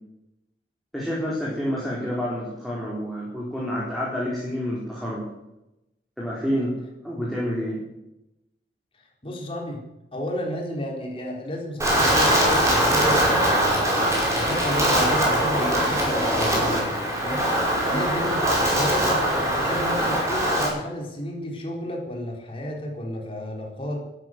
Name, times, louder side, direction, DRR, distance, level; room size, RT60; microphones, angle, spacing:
voice 1, 0.9-5.2 6.2-6.7 7.0-7.8, equal, ahead, -7 dB, 4.2 m, -28 dB
voice 2, 9.2-9.8 10.1-13.9 14.3-16.9 17.2-17.4 17.9-24.0, left 1 dB, 30° left, 0 dB, 4.1 m, -32 dB
Wind, 11.8-20.7, right 1 dB, 20° right, 5.5 m, -22 dB
13.0 x 12.5 x 7.9 m, 0.90 s
head